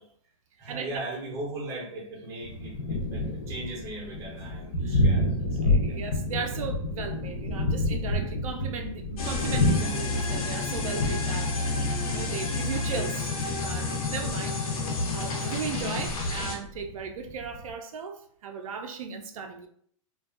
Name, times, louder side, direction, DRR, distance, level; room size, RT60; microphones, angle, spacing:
voice 1, 0.6-6.0 6.4-6.7 15.4-15.7, right 2 dB, 15° right, 0.5 m, -39 dB
Thunder, 2.4-17.7, left 1 dB, 45° left, 0.4 m, -30 dB
voice 2, 5.6-11.8 12.1-13.3 13.6-14.6 15.1-19.7, right 5 dB, 75° right, 0.4 m, -36 dB
sound 1, 9.2-16.6, left 3 dB, 90° left, 0.7 m, -30 dB
2.5 x 2.2 x 2.3 m
hypercardioid pair, 165°, 18 cm